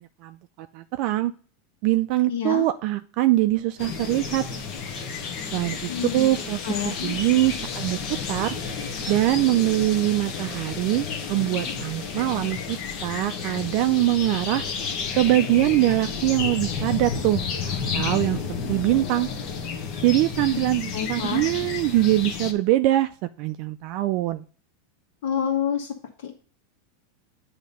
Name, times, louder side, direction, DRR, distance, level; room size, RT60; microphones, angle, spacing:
voice 1, 0.0-1.3 1.8-4.5 5.5-8.0 8.3-8.5 9.1-12.8 13.0-14.6 15.2-18.4 18.7-19.3 20.0-23.1 23.4-24.4, right 16 dB, 50° right, 9 dB, 0.4 m, -23 dB
voice 2, 2.3-2.7 5.9-6.3 6.6-7.2 20.5-20.6 20.9-21.5 25.2-25.9 26.2-26.3, left 8 dB, 65° left, 0 dB, 1.3 m, -28 dB
sound 1, 3.8-22.5, left 5 dB, 40° left, 0.9 m, -31 dB
8.2 x 2.9 x 5.2 m, 0.40 s
supercardioid pair, 145°, 0 cm